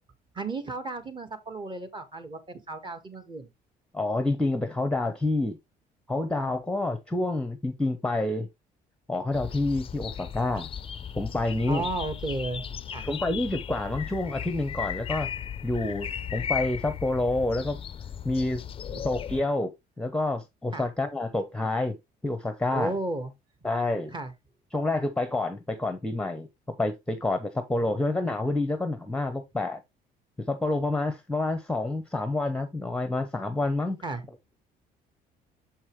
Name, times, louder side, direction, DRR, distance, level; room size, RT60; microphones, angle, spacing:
voice 1, 0.3-3.5 11.7-13.1 18.9-19.1 20.7-20.9 22.7-23.3 24.1-24.3 34.0-34.2, right 2 dB, 30° right, 1.7 m, -34 dB
voice 2, 3.9-5.6 6.1-8.5 9.1-10.7 11.1-11.8 13.0-15.3 15.6-17.8 18.2-18.6 19.0-19.7 20.0-21.9 22.2-22.9 23.6-24.1 24.7-26.5 26.8-29.8 30.4-34.0, left 2 dB, 5° left, 0.9 m, -28 dB
sound 1, 9.3-19.4, left 8 dB, 35° left, 0.5 m, -36 dB
7.2 x 5.4 x 3.2 m
cardioid pair, 110°, 17 cm